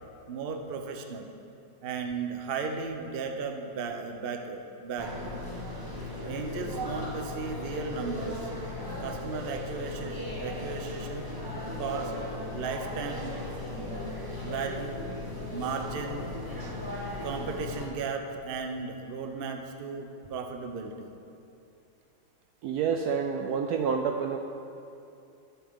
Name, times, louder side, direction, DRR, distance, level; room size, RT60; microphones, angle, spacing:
voice 1, 0.3-1.3 1.8-5.1 6.2-8.5 9.0-11.3 11.8-12.1 12.5-13.3 14.4-15.1 15.5-16.3 17.2-21.1, right 5 dB, 45° right, 4 dB, 0.7 m, -35 dB
sound 1, 5.0-17.9, left 1 dB, 15° right, 1.1 m, -37 dB
voice 2, 22.6-24.4, right 6 dB, 70° right, 4 dB, 1.0 m, -28 dB
20.5 x 7.1 x 3.7 m, 2.7 s
omnidirectional pair, 2.0 m